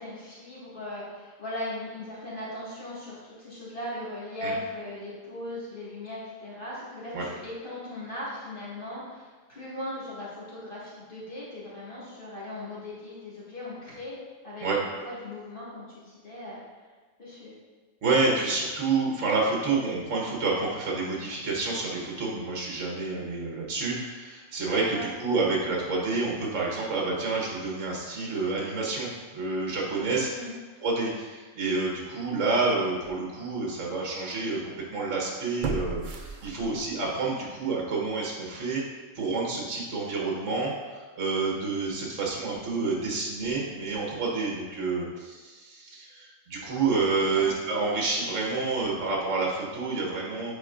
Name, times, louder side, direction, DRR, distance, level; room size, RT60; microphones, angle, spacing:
voice 1, 0.0-14.2 14.4-16.6 17.2-17.5 24.9-25.1 30.2-30.6 47.3-47.5, left 1 dB, 45° left, -9 dB, 2.0 m, -38 dB
voice 2, 18.0-30.3 30.8-38.8 39.1-50.5, right 3 dB, 70° right, -2 dB, 1.5 m, -29 dB
sound 1, 32.3-32.5 33.0-33.1 35.6-37.1 37.4-37.5, right 3 dB, 55° right, 0.6 m, -34 dB
9.0 x 4.3 x 2.5 m, 1.3 s
omnidirectional pair, 1.3 m